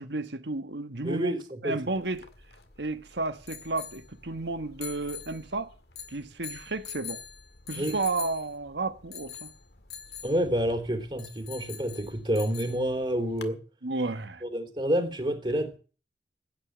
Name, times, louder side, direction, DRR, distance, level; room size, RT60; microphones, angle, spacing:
voice 1, 0.0-1.3 1.6-2.3 2.8-5.7 6.1-7.2 7.7-9.5 13.8-14.4, right 3 dB, 85° right, 1.6 m, -32 dB
voice 2, 1.0-1.8 7.7-8.0 10.2-13.6 14.4-15.8, equal, 30° right, 3.6 m, -28 dB
sound 1, 2.0-13.5, left 8 dB, 70° left, 1.9 m, -45 dB
15.5 x 9.6 x 8.0 m
head